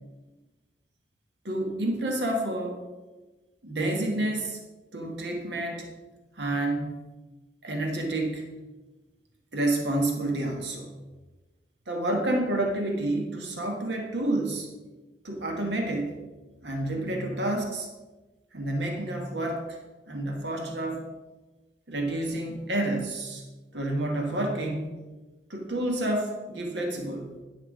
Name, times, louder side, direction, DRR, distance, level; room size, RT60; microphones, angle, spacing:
voice 1, 1.4-2.8 3.6-4.6 4.9-5.9 6.4-6.9 7.6-8.5 9.5-10.9 11.9-14.7 15.2-16.1 16.6-17.9 18.5-19.8 20.1-21.0 21.9-23.4 23.7-24.9 25.5-27.3, right 1 dB, 70° right, 2 dB, 1.4 m, -29 dB
10.0 x 5.6 x 4.9 m, 1.2 s
head